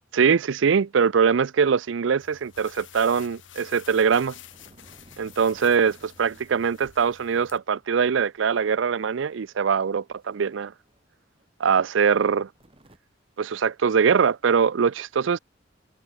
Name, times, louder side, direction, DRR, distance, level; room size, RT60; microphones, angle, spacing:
voice 1, 0.1-4.3 5.2-10.7 11.6-12.5 13.4-15.4, right 6 dB, 75° right, 0.5 m, -22 dB
sound 1, 2.2-7.6, left 9 dB, 80° left, 2.4 m, -49 dB
sound 2, 4.2-7.4 7.7-7.8 9.1-11.1 11.4-11.5 12.6-13.0, right 1 dB, 30° right, 5.0 m, -57 dB
open air
head